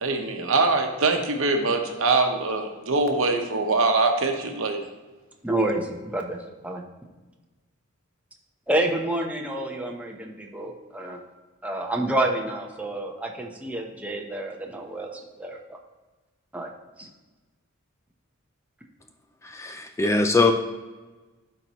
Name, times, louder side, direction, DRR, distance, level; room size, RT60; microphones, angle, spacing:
voice 1, 0.0-4.8, right 3 dB, 65° right, 4 dB, 1.0 m, -23 dB
voice 2, 5.4-6.4 6.6-6.8 8.7-11.2 11.6-15.8 16.5-16.7 17.0-17.1, right 1 dB, 5° right, 1 dB, 0.7 m, -29 dB
voice 3, 19.6-20.5, left 3 dB, 15° left, 5 dB, 0.4 m, -21 dB
12.5 x 4.5 x 2.9 m, 1.2 s
head